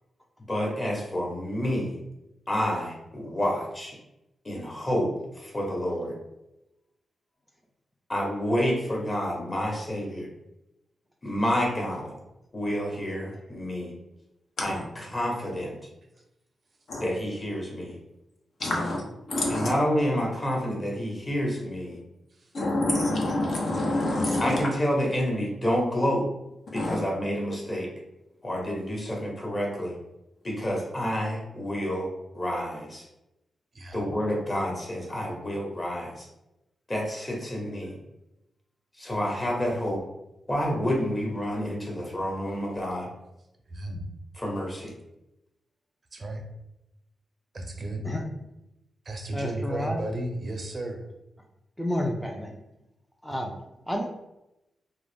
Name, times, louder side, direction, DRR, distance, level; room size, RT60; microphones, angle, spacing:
voice 1, 0.5-2.0 2.5-4.0 4.4-6.2 8.1-10.3 11.2-12.1 12.5-13.9 14.6-15.7 17.0-17.9 19.5-22.0 24.4-26.2 26.7-27.9 28.4-30.0 30.4-32.1 32.3-33.0 33.9-36.3 36.9-38.0 39.0-40.0 40.5-43.1 44.4-44.9, equal, 35° left, -2 dB, 1.1 m, -29 dB
voice 2, 18.6-19.0 19.3-19.7 22.5-24.7 26.7-27.0, left 1 dB, 65° left, -2 dB, 0.7 m, -27 dB
voice 3, 43.7-44.0 46.1-46.5 47.5-48.1 49.1-51.0 52.8-52.9, right 1 dB, 50° right, 3 dB, 0.5 m, -34 dB
voice 4, 49.3-50.1 51.8-52.5 53.2-53.5 53.9-54.0, left 1 dB, 5° left, 1 dB, 0.4 m, -30 dB
2.3 x 2.0 x 3.3 m, 0.90 s
supercardioid pair, 50°, 0 cm